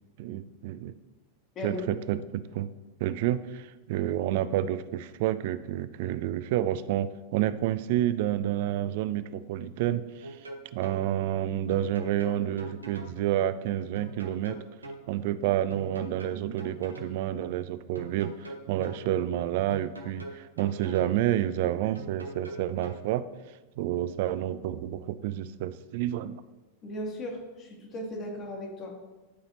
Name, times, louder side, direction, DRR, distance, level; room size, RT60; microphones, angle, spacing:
voice 1, 0.2-0.9 1.6-2.7 3.0-10.4 10.7-14.6 15.1-23.2 23.8-26.4, right 12 dB, 50° right, 14 dB, 0.3 m, -29 dB
sound 1, 10.2-11.0 11.7-13.2 13.9-15.0 15.7-17.2 17.9-19.0 19.7-21.2 21.9-23.0, right 2 dB, 80° right, 0.9 m, -42 dB
voice 2, 26.8-28.9, left 1 dB, 30° left, 0 dB, 1.7 m, -37 dB
12.0 x 4.0 x 2.9 m, 1.2 s
figure-of-eight pair, 90°, 0 cm